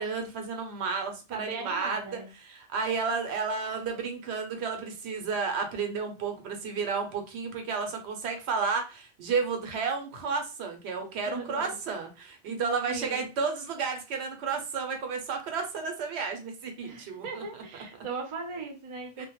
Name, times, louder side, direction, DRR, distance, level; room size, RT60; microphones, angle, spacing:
voice 1, 0.0-17.4 19.2-19.3, right 5 dB, 85° right, 4 dB, 0.9 m, -32 dB
voice 2, 1.3-2.3 11.3-11.8 12.4-12.6 12.9-13.2 16.8-19.3, right 4 dB, 40° right, 3 dB, 0.5 m, -38 dB
2.1 x 2.1 x 2.9 m, 0.30 s
omnidirectional pair, 1.1 m